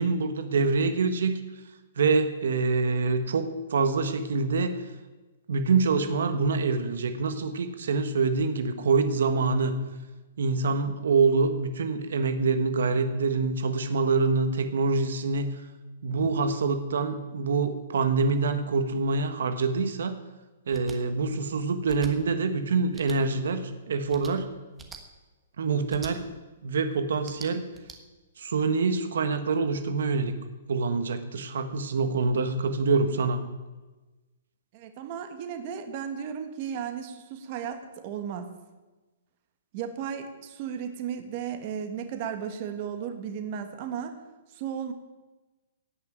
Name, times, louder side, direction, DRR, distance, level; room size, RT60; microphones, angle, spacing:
voice 1, 0.0-1.4 2.0-4.7 5.5-9.7 10.4-15.5 16.0-20.2 20.7-24.5 25.6-26.3 26.6-27.7 28.4-30.3 30.7-33.4, right 4 dB, 75° right, 8 dB, 1.5 m, -25 dB
sound 1, 20.7-21.0 21.8-22.1 22.9-23.2 24.1-24.3 24.8-25.0 25.9-26.1 27.1-28.0, right 5 dB, 10° right, 1.3 m, -44 dB
voice 2, 34.7-38.5 39.7-44.2 44.5-44.9, right 8 dB, 35° right, 6 dB, 1.6 m, -35 dB
17.5 x 6.1 x 9.2 m, 1.2 s
hypercardioid pair, 160°, 0 cm